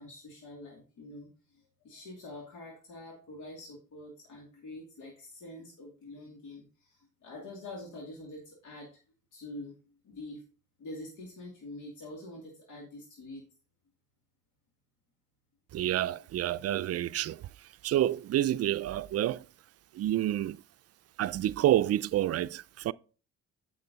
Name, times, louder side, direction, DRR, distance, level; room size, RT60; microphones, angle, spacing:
voice 1, 0.0-9.0 9.3-10.4 10.8-13.4, left 2 dB, 75° left, 2.6 m, -46 dB
voice 2, 15.7-17.5 17.8-19.5 19.9-20.6 21.2-22.9, right 13 dB, 55° right, 0.4 m, -28 dB
9.1 x 6.3 x 4.0 m
cardioid pair, 90°, 30 cm